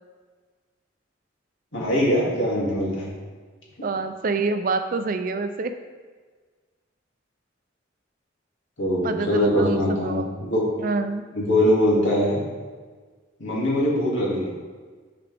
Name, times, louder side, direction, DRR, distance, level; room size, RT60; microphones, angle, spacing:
voice 1, 1.7-3.1 8.8-10.6 11.3-12.4 13.4-14.5, left 1 dB, 80° left, -4 dB, 2.3 m, -22 dB
voice 2, 3.8-5.8 9.0-10.3 10.8-11.2, right 3 dB, 45° right, 9 dB, 0.4 m, -26 dB
9.8 x 5.1 x 3.4 m, 1.5 s
head